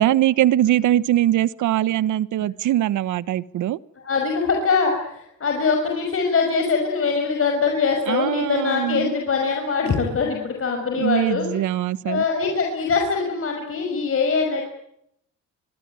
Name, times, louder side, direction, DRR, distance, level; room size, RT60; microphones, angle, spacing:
voice 1, 0.0-3.8 8.1-9.1 11.0-12.2, right 13 dB, 75° right, 1.1 m, -21 dB
voice 2, 4.0-11.7 12.0-14.6, left 5 dB, 45° left, 6.0 m, -23 dB
24.5 x 23.0 x 9.2 m
cardioid pair, 90°, 30 cm